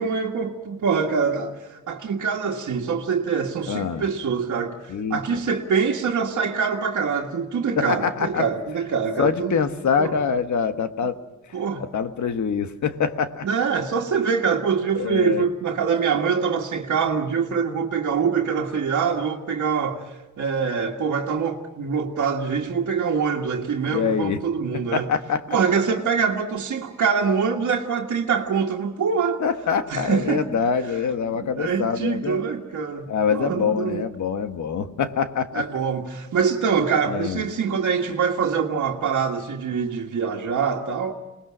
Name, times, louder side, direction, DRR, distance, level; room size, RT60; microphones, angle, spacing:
voice 1, 0.0-9.6 10.0-10.1 11.5-11.9 13.4-25.1 25.5-29.4 29.9-30.5 31.3-34.1 35.5-41.1, right 6 dB, 80° right, 1.8 m, -24 dB
voice 2, 3.7-4.0 4.9-5.2 7.7-8.5 9.2-11.2 11.8-13.5 15.0-15.5 23.9-24.4 24.9-25.6 29.4-32.4 33.1-35.6 37.1-37.5, left 6 dB, 80° left, 1.5 m, -25 dB
28.5 x 20.0 x 6.3 m
wide cardioid pair, 170°, 29 cm